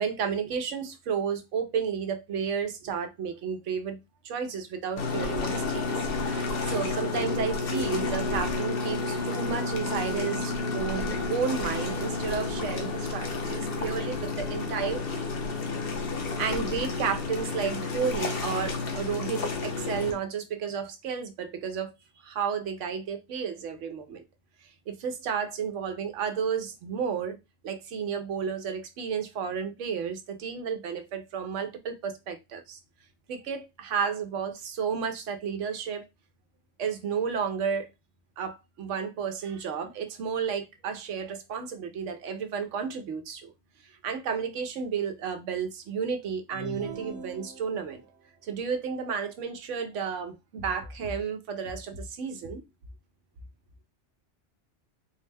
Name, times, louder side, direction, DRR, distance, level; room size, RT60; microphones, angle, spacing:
voice 1, 0.0-4.0 4.2-15.3 16.4-21.9 22.2-24.2 24.6-27.4 27.6-32.8 33.3-36.1 36.8-37.9 38.4-43.5 43.8-48.0 48.4-52.6, right 6 dB, 85° right, 1.0 m, -32 dB
sound 1, 5.0-20.1, left 3 dB, 55° left, 0.9 m, -31 dB
sound 2, 46.5-48.1, right 1 dB, 65° right, 1.2 m, -41 dB
4.1 x 2.1 x 3.3 m
omnidirectional pair, 1.2 m